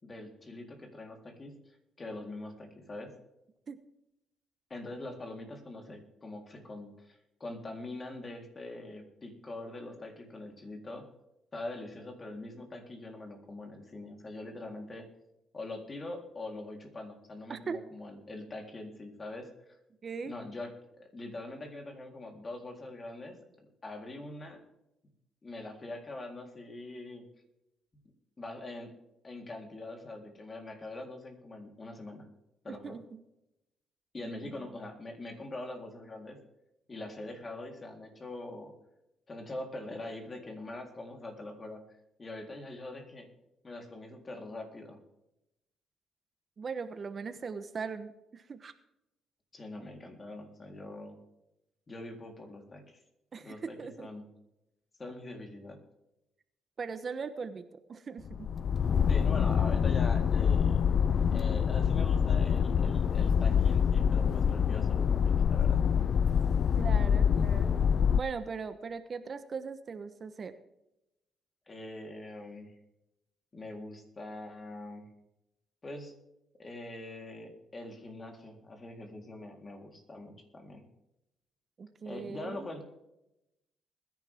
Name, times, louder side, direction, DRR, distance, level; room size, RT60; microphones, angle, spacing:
voice 1, 0.0-3.1 4.7-11.1 11.5-15.1 15.5-19.8 20.3-20.7 21.0-23.4 23.8-24.6 25.4-27.3 28.4-28.9 29.2-32.3 32.6-33.0 34.1-36.4 36.9-38.7 39.3-41.8 42.2-43.3 43.6-45.0 49.5-51.2 51.9-53.0 53.4-54.3 55.0-55.8 59.1-60.8 61.3-65.8 71.7-72.8 73.5-75.1 75.8-76.1 76.6-80.8 82.1-82.8, left 2 dB, 30° left, 3 dB, 3.8 m, -43 dB
voice 2, 20.0-20.3 32.7-33.2 34.2-34.8 46.6-48.7 53.3-54.1 56.8-58.5 66.8-67.7 68.1-70.5 81.8-82.7, right 5 dB, 45° right, 10 dB, 1.1 m, -39 dB
sound 1, 58.2-68.2, left 7 dB, 55° left, 0.5 m, -26 dB
21.0 x 10.5 x 3.7 m, 0.88 s
cardioid pair, 90°, 0 cm